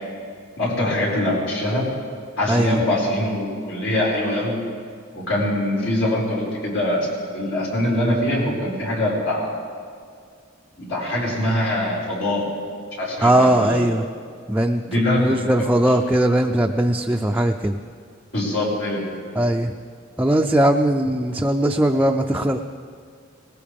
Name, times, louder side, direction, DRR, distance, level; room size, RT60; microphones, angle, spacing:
voice 1, 0.6-1.8 2.4-4.6 5.1-7.1 7.3-9.5 10.8-12.4 13.0-13.9 14.8-15.7 16.0-16.1 18.3-19.2, left 1 dB, 85° left, -5 dB, 5.2 m, -23 dB
voice 2, 2.5-2.8 13.2-14.0 14.5-14.8 15.2-17.8 19.4-19.7 20.2-22.7, right 1 dB, 10° right, 2 dB, 0.4 m, -19 dB
19.5 x 19.0 x 3.5 m, 2.1 s
head